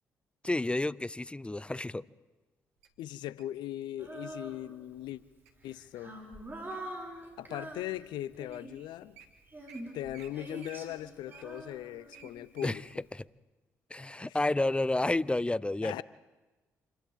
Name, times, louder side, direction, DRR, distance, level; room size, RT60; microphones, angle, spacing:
voice 1, 0.4-2.0 12.6-12.8 13.9-15.9, left 2 dB, 15° left, 0.6 m, -30 dB
Wild animals, 2.8-3.6 4.3-4.6 5.1-5.5 6.0-7.0 7.6-7.7 8.2-8.3 8.5-8.7 8.9-9.2 9.7-9.8 10.1-10.3 10.6-12.8 13.2-13.3, right 7 dB, 85° right, 1.7 m, -54 dB
voice 2, 3.0-5.2 5.6-6.2 7.4-9.2 9.9-13.0 14.2-14.4 15.1-15.2 15.8-16.0, left 13 dB, 70° left, 0.6 m, -39 dB
Female singing, 4.0-5.1 5.6-8.9 9.5-12.7, right 1 dB, 25° right, 6.8 m, -45 dB
29.5 x 27.0 x 3.8 m
hypercardioid pair, 40°, 8 cm